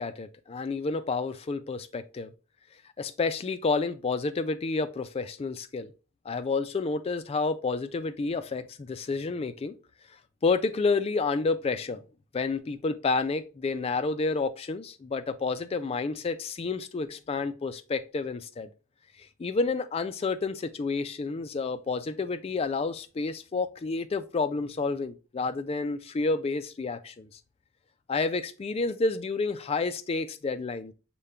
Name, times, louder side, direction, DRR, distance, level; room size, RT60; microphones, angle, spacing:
voice 1, 0.0-2.3 3.0-5.9 6.3-9.8 10.4-12.0 12.3-18.7 19.2-27.4 28.1-30.9, left 4 dB, 25° left, 0.3 m, -30 dB
6.6 x 2.2 x 3.5 m
head